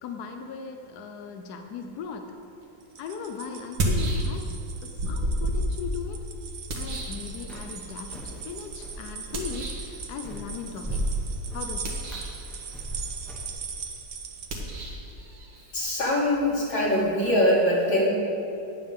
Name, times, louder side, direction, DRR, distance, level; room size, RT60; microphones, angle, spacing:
voice 1, 0.0-2.3 3.0-4.5 4.8-6.2 6.7-11.1 11.5-12.2, left 5 dB, 70° left, 5 dB, 1.2 m, -38 dB
sound 1, 2.6-2.7 3.6-4.6 5.0-7.8 9.3-10.0 11.7-12.5 14.4-17.0, equal, 90° right, 2.1 m, -31 dB
sound 2, 2.8-14.5, right 6 dB, 50° right, 0.8 m, -41 dB
sound 3, 6.7-13.5, right 1 dB, ahead, 2.2 m, -36 dB
voice 2, 15.7-18.1, left 1 dB, 85° left, -7 dB, 3.8 m, -23 dB
19.0 x 7.1 x 3.7 m, 2.8 s
omnidirectional pair, 1.9 m